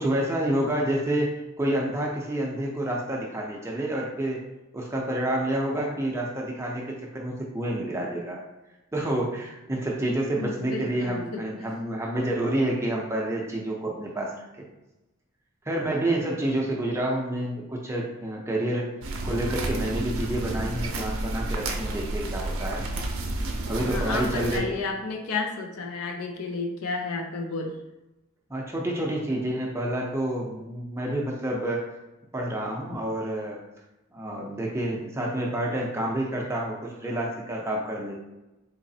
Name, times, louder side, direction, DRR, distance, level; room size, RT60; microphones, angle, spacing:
voice 1, 0.0-4.4 4.7-8.4 8.9-14.7 15.7-18.9 19.2-22.8 23.7-24.8 28.5-31.8 32.3-33.6 34.1-38.2, right 1 dB, 10° right, -2 dB, 0.5 m, -28 dB
voice 2, 10.4-11.4 23.7-27.8, left 3 dB, 90° left, 4 dB, 0.6 m, -32 dB
sound 1, 19.0-24.6, right 2 dB, 70° right, 0.5 m, -30 dB
4.0 x 3.0 x 2.7 m, 0.98 s
head